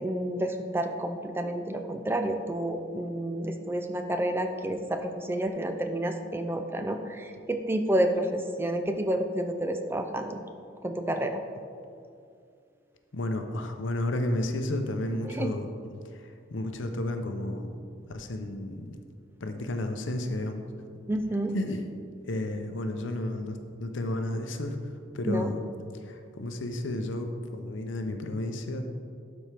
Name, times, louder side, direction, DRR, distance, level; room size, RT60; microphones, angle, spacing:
voice 1, 0.0-10.4 10.8-11.4 15.2-15.5 21.1-21.6 25.2-25.5, right 1 dB, 10° right, 6 dB, 0.3 m, -30 dB
voice 2, 13.1-15.7 16.1-17.7 18.1-19.0 19.4-20.6 21.5-21.8 22.3-24.8 25.1-25.6 25.9-28.9, left 1 dB, 70° left, 6 dB, 0.7 m, -32 dB
12.0 x 4.3 x 3.4 m, 2.4 s
head